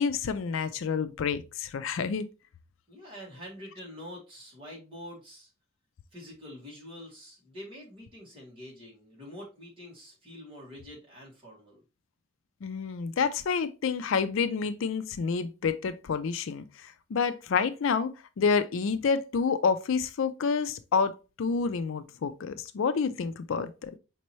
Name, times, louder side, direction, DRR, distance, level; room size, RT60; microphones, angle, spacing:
voice 1, 0.0-2.2 12.6-18.1 18.4-23.9, left 5 dB, 65° left, 0.4 m, -28 dB
voice 2, 2.9-5.5 6.1-11.8, left 1 dB, 25° right, 1.9 m, -46 dB
5.2 x 2.9 x 3.0 m
head